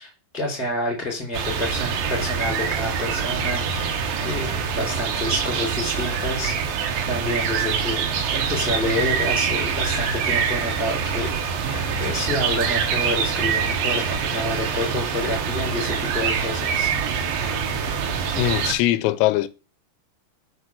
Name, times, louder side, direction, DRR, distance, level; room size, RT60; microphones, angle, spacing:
voice 1, 0.0-6.5 7.1-16.9, left 2 dB, ahead, 2.6 m, -29 dB
sound 1, 1.3-18.7, right 6 dB, 75° right, 2.2 m, -25 dB
voice 2, 18.4-19.5, left 14 dB, 85° left, 3.3 m, -21 dB
7.9 x 5.0 x 6.5 m
omnidirectional pair, 5.9 m